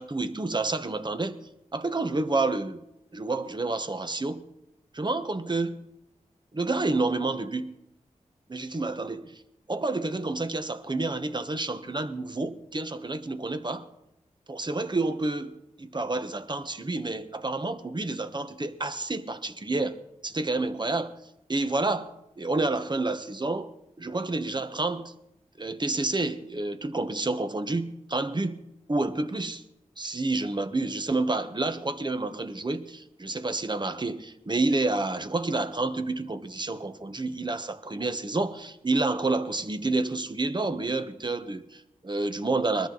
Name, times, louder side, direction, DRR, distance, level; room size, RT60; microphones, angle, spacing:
voice 1, 0.0-1.4 1.7-2.8 3.1-4.4 4.9-5.8 6.5-7.7 8.5-9.4 9.7-13.9 14.5-20.0 20.2-21.2 21.5-23.7 24.0-25.1 25.6-28.6 28.9-29.6 30.0-42.9, right 2 dB, 35° right, 1.3 m, -29 dB
20.5 x 13.0 x 4.0 m
cardioid pair, 60°, 13 cm